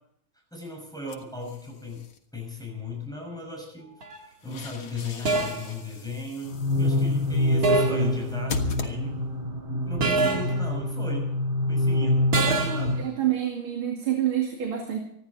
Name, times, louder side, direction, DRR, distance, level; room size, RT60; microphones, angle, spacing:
voice 1, 0.5-2.1 2.3-3.9 4.2-9.2 9.9-11.3 11.7-13.1, left 2 dB, ahead, -1 dB, 6.3 m, -37 dB
sound 1, 1.1-2.2 4.1-9.5, left 4 dB, 85° left, 2.5 m, -39 dB
sound 2, 4.0-4.3 5.3-5.7 7.6-8.1 10.0-10.6 12.3-12.9, right 3 dB, 45° right, 2.3 m, -25 dB
sound 3, 6.4-13.1, left 1 dB, 30° right, 3.3 m, -26 dB
voice 2, 12.4-15.0, right 10 dB, 90° right, 1 dB, 3.2 m, -28 dB
26.0 x 11.5 x 4.2 m, 0.73 s
omnidirectional pair, 2.2 m